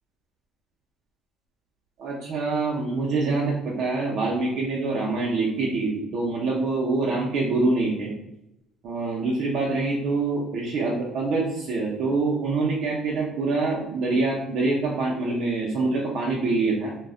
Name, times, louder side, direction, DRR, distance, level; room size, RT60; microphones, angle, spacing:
voice 1, 2.0-8.1 8.8-17.0, right 3 dB, 65° right, -3 dB, 0.5 m, -25 dB
2.2 x 2.0 x 3.7 m, 0.85 s
cardioid pair, 110°, 0 cm